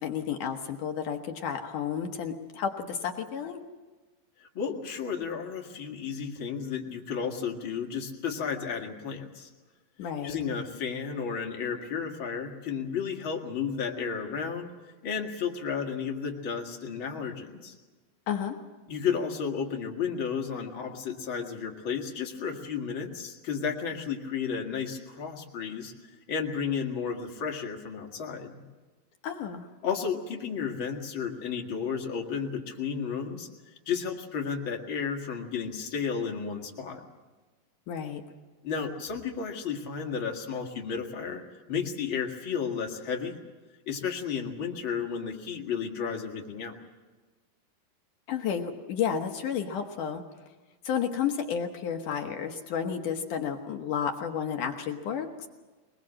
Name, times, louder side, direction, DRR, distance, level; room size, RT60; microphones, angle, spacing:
voice 1, 0.0-3.6 10.0-10.4 18.3-18.6 29.2-29.7 37.9-38.2 48.3-50.2 50.8-55.5, left 7 dB, 65° left, 4 dB, 2.3 m, -31 dB
voice 2, 4.4-9.5 10.2-14.7 15.0-17.7 18.9-25.9 26.3-28.6 29.8-33.5 33.9-37.0 38.6-41.4 41.7-43.4 43.9-46.8, left 6 dB, 40° left, 2 dB, 2.0 m, -33 dB
23.0 x 21.0 x 7.5 m, 1.3 s
omnidirectional pair, 4.6 m